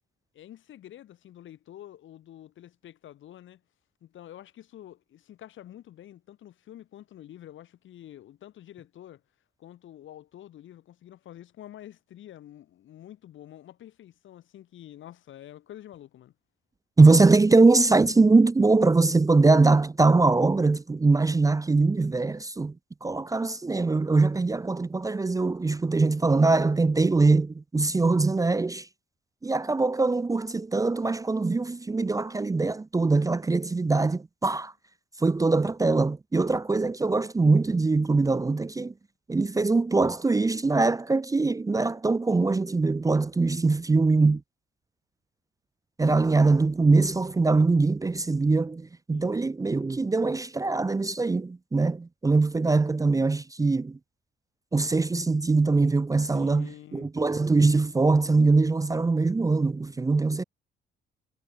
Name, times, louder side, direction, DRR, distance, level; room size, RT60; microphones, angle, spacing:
voice 1, 0.3-3.6 4.0-9.2 9.6-16.3 49.1-49.4 56.3-57.1, left 12 dB, 75° left, 7.2 m, -47 dB
voice 2, 17.0-22.7 23.0-28.9 29.4-34.7 35.2-38.9 39.3-44.4 46.0-54.0 54.7-60.4, right 3 dB, 15° right, 0.6 m, -22 dB
cardioid pair, 90°, 20 cm